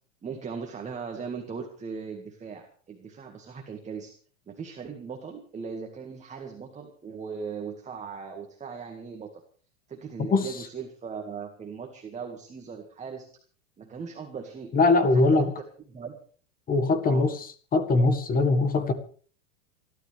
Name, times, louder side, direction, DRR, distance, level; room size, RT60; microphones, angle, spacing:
voice 1, 0.2-4.1 4.5-9.4 9.9-13.3 13.8-15.5 15.9-16.2 17.0-17.3, right 6 dB, 20° right, 3 dB, 2.0 m, -39 dB
voice 2, 14.7-15.4 16.7-18.9, left 3 dB, 20° left, 8 dB, 1.9 m, -22 dB
28.0 x 12.5 x 3.5 m, 0.44 s
supercardioid pair, 130°, 38 cm